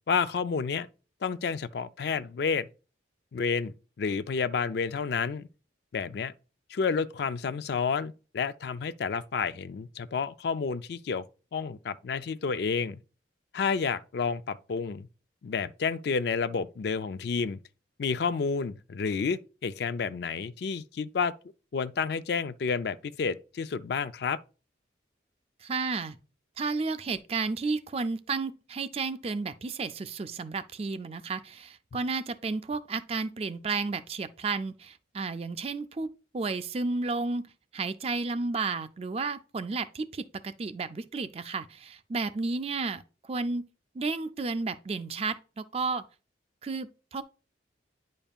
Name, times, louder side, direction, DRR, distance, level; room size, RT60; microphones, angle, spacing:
voice 1, 0.1-0.9 1.2-2.7 3.3-5.5 5.9-6.3 6.7-11.2 11.5-13.0 13.5-15.1 15.4-17.6 18.0-21.3 21.7-24.4, left 5 dB, 60° left, 0.4 m, -30 dB
voice 2, 25.6-26.2 26.6-36.1 36.3-43.7 43.9-46.0 46.6-47.2, right 4 dB, 30° right, 0.4 m, -32 dB
9.9 x 5.2 x 2.4 m
head